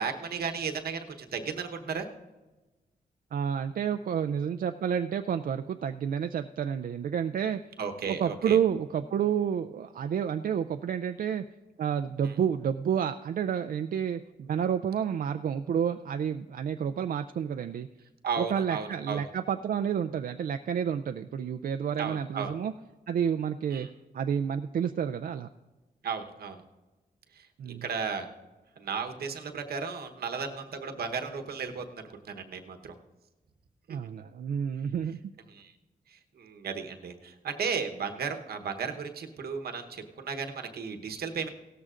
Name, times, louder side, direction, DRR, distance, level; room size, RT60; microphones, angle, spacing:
voice 1, 0.0-2.1 7.8-8.6 12.2-12.3 18.2-19.2 22.0-22.5 23.7-23.9 26.0-26.6 27.3-28.3 28.8-32.9 35.5-35.7 36.1-41.5, right 5 dB, 80° right, 5 dB, 1.1 m, -35 dB
voice 2, 3.3-7.6 8.1-11.4 11.8-17.9 18.4-22.7 23.1-23.9 24.1-25.5 27.6-27.8 33.9-35.2, right 8 dB, 65° right, 7 dB, 0.4 m, -30 dB
16.5 x 13.5 x 2.5 m, 1.1 s
cardioid pair, 90°, 16 cm